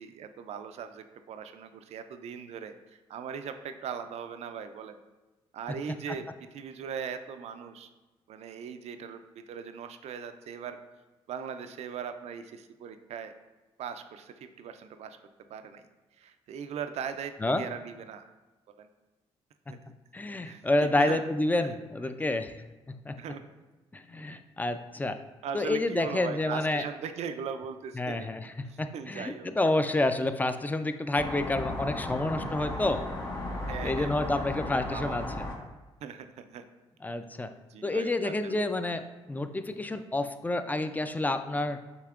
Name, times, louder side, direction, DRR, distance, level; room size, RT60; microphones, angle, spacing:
voice 1, 0.0-5.0 5.5-6.3 6.5-7.9 8.3-10.8 11.3-13.3 13.8-15.2 15.5-15.8 16.2-18.3 18.8-18.9 19.7-19.8 20.4-21.3 21.6-21.7 22.2-22.4 23.2-23.6 25.4-29.5 32.4-32.8 33.7-35.2 36.0-36.6 37.7-38.6, right 7 dB, 65° right, 9 dB, 0.4 m, -40 dB
voice 2, 20.1-22.6 22.9-23.2 23.9-25.2 25.5-26.8 28.0-33.0 33.8-35.4 37.0-37.5 37.8-39.0 39.3-41.8, left 2 dB, 15° left, 9 dB, 0.3 m, -29 dB
sound 1, 31.2-35.5, left 1 dB, 35° left, 1.5 m, -35 dB
6.7 x 2.8 x 2.4 m, 1.1 s
supercardioid pair, 65°, 12 cm